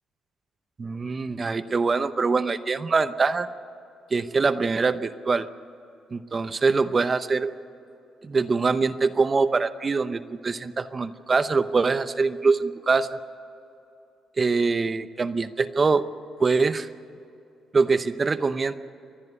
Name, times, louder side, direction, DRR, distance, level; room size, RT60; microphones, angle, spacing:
voice 1, 0.8-3.5 4.1-5.5 6.1-7.5 8.2-13.2 14.4-16.1 16.4-16.9 17.7-18.7, right 4 dB, 35° right, 11 dB, 0.8 m, -23 dB
27.0 x 10.5 x 9.8 m, 2.7 s
cardioid pair, 90°, 0 cm